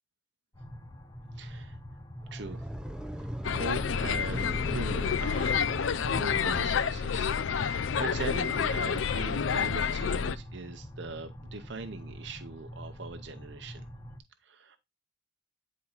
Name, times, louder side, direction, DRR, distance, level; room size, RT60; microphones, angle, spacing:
sound 1, 0.5-14.2, equal, 20° left, 0.9 m, -44 dB
voice 1, 1.4-1.8 2.3-2.6 3.2-5.7 6.0-13.9 14.4-14.8, right 3 dB, 70° right, 0.8 m, -41 dB
sound 2, 2.2-7.4, equal, 5° right, 0.4 m, -40 dB
sound 3, 3.4-10.4, left 7 dB, 90° left, 0.5 m, -29 dB
9.6 x 4.2 x 3.9 m
head